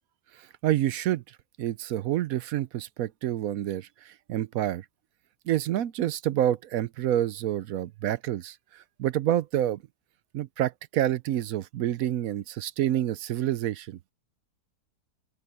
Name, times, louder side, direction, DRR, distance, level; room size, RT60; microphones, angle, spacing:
voice 1, 0.6-1.2 1.6-4.8 5.5-8.6 9.0-9.8 10.3-14.0, right 12 dB, 70° right, 1.0 m, -28 dB
open air
omnidirectional pair, 1.6 m